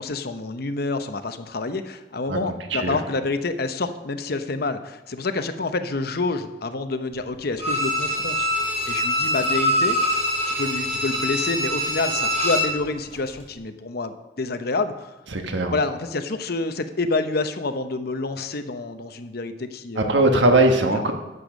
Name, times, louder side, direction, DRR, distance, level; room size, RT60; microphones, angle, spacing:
voice 1, 0.0-8.5 8.9-10.0 10.4-15.1 15.7-20.2 20.9-21.0, left 3 dB, 60° left, 9 dB, 0.8 m, -28 dB
Bowed string instrument, 7.6-12.8 13.1-13.2, equal, 35° right, 3.8 m, -24 dB
voice 2, 15.3-15.7 19.9-21.1, right 2 dB, 85° right, 4 dB, 1.4 m, -19 dB
11.0 x 7.0 x 6.4 m, 1.0 s
head